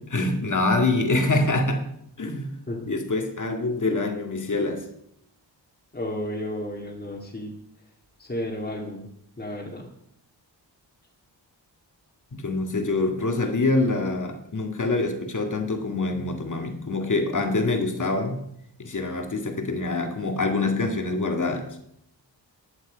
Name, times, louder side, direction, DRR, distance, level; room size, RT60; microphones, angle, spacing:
voice 1, 0.1-1.9 2.2-2.6 2.8-4.9 12.3-18.4 18.8-21.8, left 2 dB, 40° left, 4 dB, 2.1 m, -25 dB
voice 2, 5.9-7.6 8.2-9.1 9.4-9.9, left 1 dB, 20° left, -4 dB, 2.2 m, -32 dB
15.5 x 10.5 x 5.1 m, 0.73 s
wide cardioid pair, 170°, 44 cm